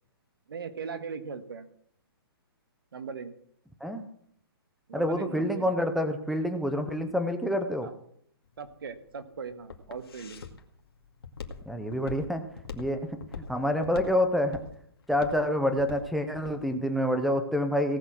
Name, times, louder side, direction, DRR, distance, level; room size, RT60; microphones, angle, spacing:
voice 1, 0.5-1.7 2.9-3.3 4.9-5.7 7.8-7.9 8.6-10.5, right 5 dB, 65° right, 10 dB, 1.5 m, -39 dB
voice 2, 4.9-7.9 11.7-12.4 12.7-13.2 13.5-14.6 15.1-18.0, equal, ahead, 8 dB, 0.5 m, -27 dB
Walk footsteps, 8.5-16.6, left 5 dB, 70° left, 2.2 m, -42 dB
18.0 x 6.7 x 6.1 m, 0.67 s
hypercardioid pair, 175°, 13 cm